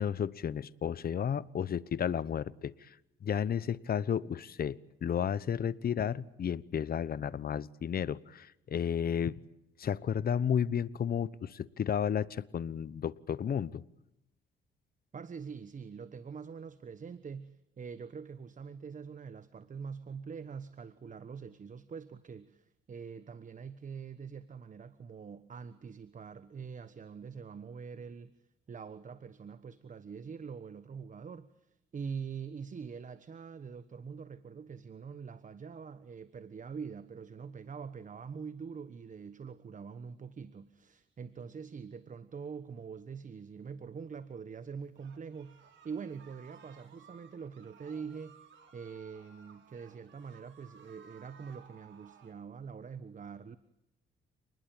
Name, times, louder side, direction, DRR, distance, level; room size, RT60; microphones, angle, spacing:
voice 1, 0.0-3.0 3.2-9.3 9.8-13.8, left 8 dB, 50° left, 18 dB, 1.1 m, -32 dB
voice 2, 15.1-28.3 28.7-53.6, right 6 dB, 40° right, 13 dB, 1.3 m, -44 dB
sound 1, 45.0-52.4, right 6 dB, 70° right, 4.9 m, -59 dB
29.0 x 20.5 x 9.1 m, 0.85 s
cardioid pair, 90°, 20 cm